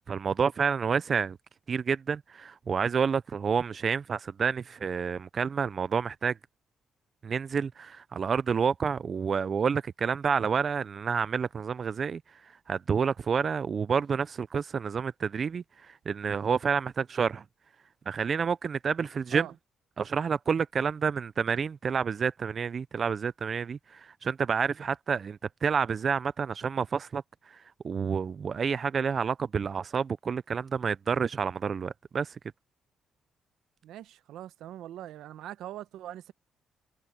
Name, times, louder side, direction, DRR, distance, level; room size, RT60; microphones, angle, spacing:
voice 1, 0.0-1.4 1.7-6.3 7.2-12.2 12.7-15.6 16.1-17.4 18.1-19.5 20.0-27.2 27.8-32.4, right 6 dB, 45° right, 0.4 m, -29 dB
voice 2, 33.8-36.3, right 12 dB, 85° right, 0.9 m, -42 dB
cardioid pair, 90°, 0 cm